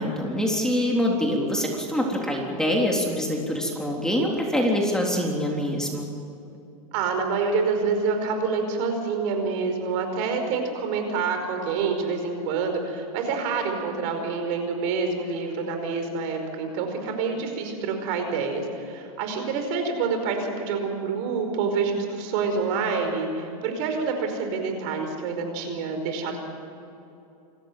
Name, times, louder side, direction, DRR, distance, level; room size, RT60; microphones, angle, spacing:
voice 1, 0.0-6.1, equal, 5° left, -1 dB, 3.7 m, -25 dB
voice 2, 6.9-26.4, right 4 dB, 55° right, 5 dB, 5.0 m, -27 dB
28.0 x 14.0 x 9.3 m, 2.8 s
hypercardioid pair, 120°, 19 cm